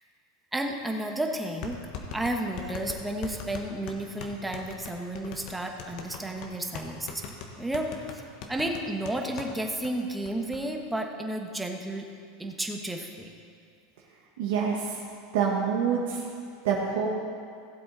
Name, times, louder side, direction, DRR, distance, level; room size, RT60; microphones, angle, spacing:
voice 1, 0.5-1.8 2.1-7.2 7.6-8.2 8.5-12.1 12.4-13.3, right 1 dB, 5° right, 3 dB, 1.4 m, -32 dB
sound 1, 0.7-0.8 1.6-9.5 9.8-9.9 10.3-10.6, left 6 dB, 60° left, 1.4 m, -40 dB
voice 2, 14.4-15.0 15.3-16.2 16.6-17.1, right 6 dB, 75° right, -2 dB, 1.5 m, -26 dB
16.5 x 7.8 x 4.2 m, 2.3 s
hypercardioid pair, 95°, 0 cm